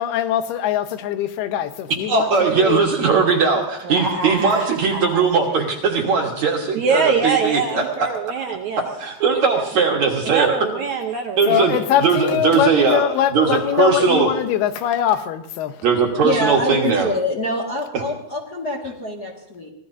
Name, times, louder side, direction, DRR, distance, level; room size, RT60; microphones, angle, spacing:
voice 1, 0.0-2.3 2.6-2.8 11.5-15.8, left 11 dB, 80° left, 2.9 m, -22 dB
voice 2, 2.1-6.6 6.9-7.8 8.8-10.6 11.4-11.8 12.0-13.0 13.3-14.3 15.8-17.1, right 5 dB, 55° right, 2.3 m, -19 dB
voice 3, 3.8-5.2 6.7-8.8 9.5-9.7 10.2-11.6, right 5 dB, 75° right, 1.8 m, -23 dB
voice 4, 16.2-19.7, left 1 dB, 40° left, 1.5 m, -25 dB
25.5 x 18.5 x 2.7 m
omnidirectional pair, 4.6 m